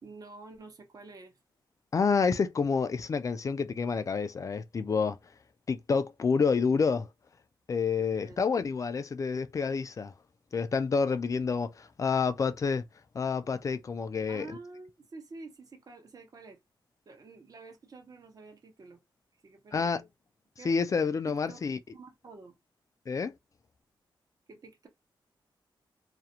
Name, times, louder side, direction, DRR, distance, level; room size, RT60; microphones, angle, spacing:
voice 1, 0.0-1.4 8.0-8.4 14.3-16.6 17.1-19.0 19.4-20.0 20.6-20.7 21.3-21.7 21.9-22.5 24.5-24.9, right 3 dB, 45° right, 0.8 m, -49 dB
voice 2, 1.9-5.2 5.7-7.1 7.7-10.1 10.5-12.8 13.1-14.5 19.7-20.0 20.6-21.8 23.1-23.3, left 5 dB, 40° left, 0.3 m, -28 dB
2.4 x 2.0 x 2.8 m
cardioid pair, 95°, 9 cm